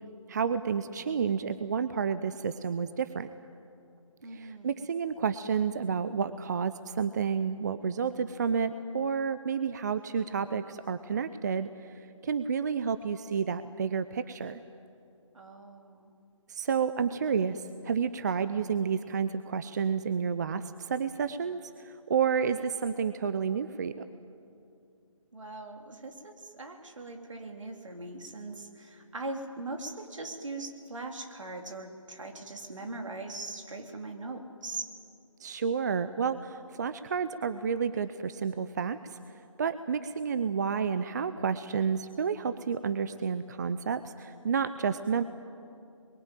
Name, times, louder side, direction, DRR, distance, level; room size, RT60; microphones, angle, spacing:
voice 1, 0.3-3.3 4.3-14.6 16.5-24.0 35.4-45.2, right 6 dB, 35° right, 12 dB, 0.6 m, -30 dB
voice 2, 4.2-4.9 15.3-16.1 25.3-34.9, right 2 dB, 65° right, 3 dB, 3.5 m, -40 dB
28.5 x 22.5 x 9.1 m, 2.6 s
figure-of-eight pair, 150°, 17 cm